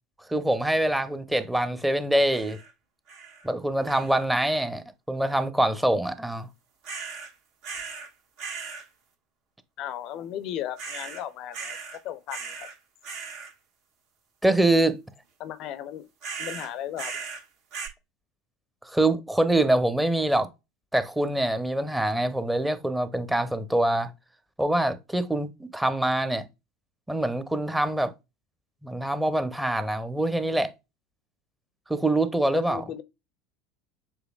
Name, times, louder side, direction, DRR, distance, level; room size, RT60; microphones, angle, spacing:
voice 1, 0.3-2.6 3.4-6.5 14.4-15.0 18.8-20.5 20.9-24.1 24.6-26.4 27.1-28.1 28.8-30.7 31.9-32.8, right 1 dB, 5° right, 0.7 m, -24 dB
sound 1, 2.3-2.7 3.1-3.5 3.8-4.3 6.8-7.3 7.6-8.1 8.4-8.8 10.8-11.2 11.5-12.0 12.3-12.8 13.0-13.5 16.2-17.4 17.7-17.9, right 5 dB, 60° right, 1.5 m, -37 dB
voice 2, 9.8-11.8 12.0-12.7 15.4-16.1 16.4-17.3 32.5-33.0, left 11 dB, 50° left, 0.5 m, -36 dB
7.0 x 3.2 x 2.3 m
figure-of-eight pair, 75°, 0 cm